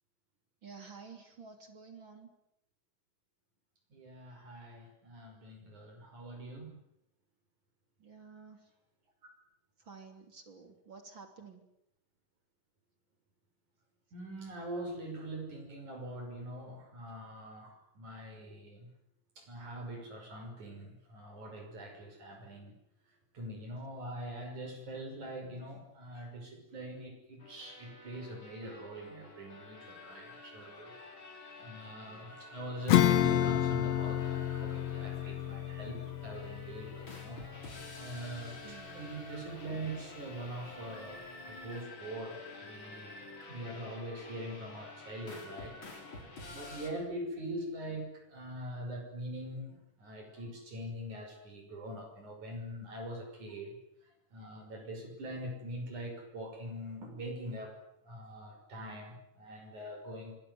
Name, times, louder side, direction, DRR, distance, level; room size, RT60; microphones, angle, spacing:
voice 1, 0.6-2.3 8.0-8.7 9.8-11.6 38.6-39.2, right 5 dB, 35° right, 6 dB, 3.6 m, -51 dB
voice 2, 3.9-6.8 14.1-18.9 19.4-22.7 23.3-31.0 31.6-37.4 38.0-43.2 43.5-45.8 46.5-53.8 54.3-57.8 58.0-60.4, right 1 dB, 65° right, 3 dB, 7.4 m, -43 dB
sound 1, 27.4-46.9, left 2 dB, 35° left, 5.1 m, -50 dB
Acoustic guitar / Strum, 32.9-38.9, left 11 dB, 60° left, 2.2 m, -31 dB
27.0 x 21.0 x 9.6 m, 0.78 s
omnidirectional pair, 3.8 m